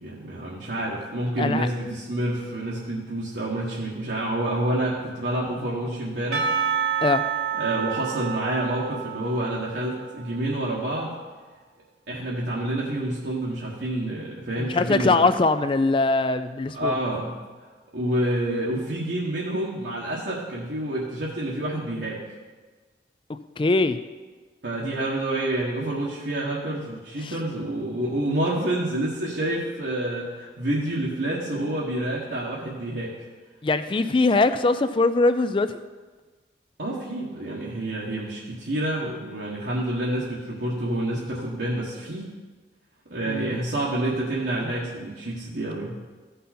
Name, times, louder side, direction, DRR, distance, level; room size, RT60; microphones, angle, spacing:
voice 1, 0.0-7.0 7.5-11.1 12.1-15.2 16.7-17.4 17.9-22.2 24.6-33.1 36.8-42.3 43.1-46.0, right 1 dB, 80° right, -6 dB, 1.6 m, -28 dB
Percussion / Church bell, 6.3-10.7, right 7 dB, 60° right, 1.3 m, -29 dB
voice 2, 14.6-16.9 23.6-24.0 27.2-27.3 33.6-35.7 43.3-43.6, left 3 dB, 30° left, 11 dB, 0.4 m, -21 dB
14.5 x 5.5 x 4.3 m, 1.3 s
head